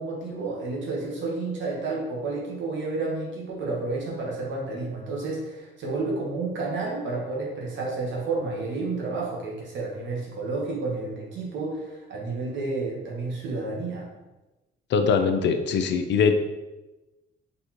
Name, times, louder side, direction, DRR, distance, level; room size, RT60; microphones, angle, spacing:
voice 1, 0.0-14.1, right 3 dB, 70° right, -3 dB, 1.2 m, -30 dB
voice 2, 14.9-16.3, left 6 dB, 65° left, 7 dB, 0.5 m, -22 dB
4.1 x 3.4 x 2.9 m, 1.1 s
cardioid pair, 90°, 20 cm